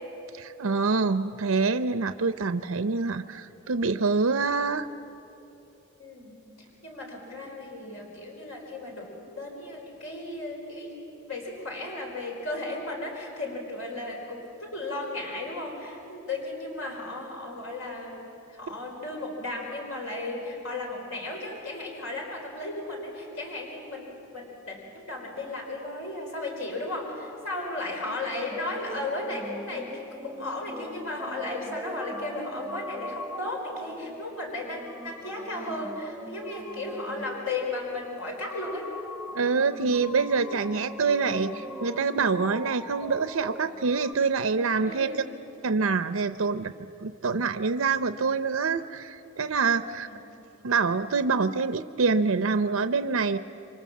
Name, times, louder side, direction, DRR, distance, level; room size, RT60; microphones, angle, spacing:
voice 1, 0.3-4.9 39.3-45.2 45.6-46.7 47.0-50.1 50.6-53.4, right 4 dB, 75° right, 10 dB, 0.6 m, -26 dB
voice 2, 6.0-11.0 11.3-38.9 40.6-40.8 44.8-45.3 49.8-50.2, left 2 dB, 70° left, 0 dB, 4.8 m, -35 dB
sound 1, 28.5-44.1, equal, ahead, 0.9 m, -41 dB
28.5 x 25.0 x 7.3 m, 3.0 s
head